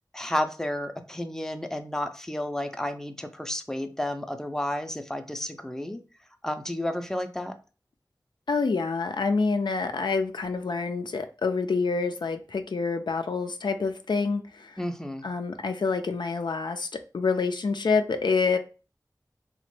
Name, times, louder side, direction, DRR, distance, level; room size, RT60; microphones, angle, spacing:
voice 1, 0.1-6.0 6.4-7.5 14.8-15.3, left 1 dB, 5° left, 7 dB, 0.4 m, -31 dB
voice 2, 8.5-14.8 15.2-16.9 17.1-18.6, left 4 dB, 85° left, 6 dB, 0.3 m, -27 dB
2.9 x 2.1 x 3.0 m, 0.34 s
wide cardioid pair, 45°, 7 cm